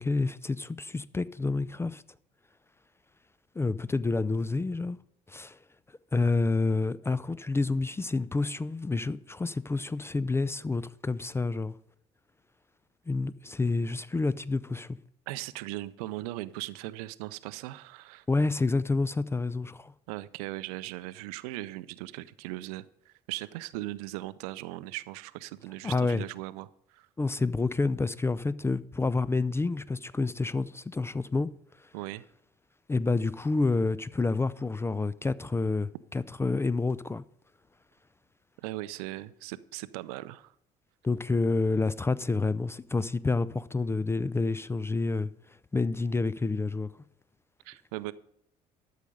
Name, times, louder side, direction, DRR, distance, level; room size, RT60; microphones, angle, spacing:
voice 1, 0.0-2.0 3.6-5.0 5.3-5.6 6.1-11.8 13.1-15.0 18.3-19.9 25.8-26.2 27.2-31.5 32.9-37.2 41.0-45.3 45.7-46.9, left 3 dB, 10° left, 0.4 m, -28 dB
voice 2, 15.3-18.3 20.1-27.1 31.9-32.2 38.6-40.5 47.6-48.1, right 17 dB, 65° right, 0.5 m, -39 dB
13.0 x 6.6 x 5.2 m
figure-of-eight pair, 50°, 21 cm